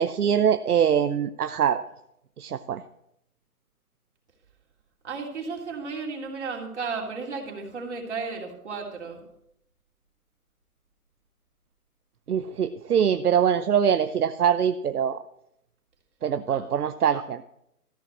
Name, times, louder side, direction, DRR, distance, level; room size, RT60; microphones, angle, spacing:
voice 1, 0.0-1.8 2.4-2.8 12.3-15.2 16.2-17.4, right 8 dB, 75° right, 11 dB, 0.8 m, -23 dB
voice 2, 5.0-9.2 16.4-16.7, right 4 dB, 50° right, 0 dB, 3.3 m, -34 dB
14.0 x 6.5 x 8.3 m, 0.78 s
hypercardioid pair, 160°, 45 cm